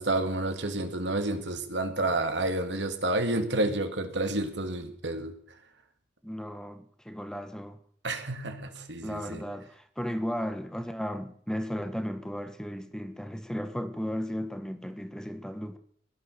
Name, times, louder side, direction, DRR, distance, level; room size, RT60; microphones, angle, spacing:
voice 1, 0.0-5.3 8.0-9.4, right 2 dB, 90° right, 2.3 m, -30 dB
voice 2, 6.2-7.8 9.0-15.8, equal, 5° left, 1.2 m, -35 dB
16.5 x 11.5 x 6.7 m
head